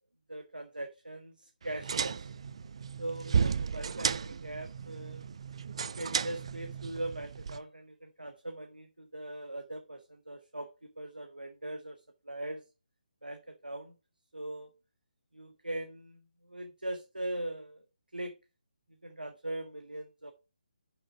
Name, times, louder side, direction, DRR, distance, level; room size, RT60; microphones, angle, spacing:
voice 1, 0.3-2.2 3.0-5.2 5.8-12.6 13.2-14.0 14.3-14.7 15.3-17.8 18.1-18.4 19.0-20.3, right 1 dB, 80° right, 1.0 m, -41 dB
sound 1, 1.6-7.6, right 6 dB, 40° right, 0.4 m, -34 dB
6.3 x 6.0 x 4.6 m
figure-of-eight pair, 145°, 5 cm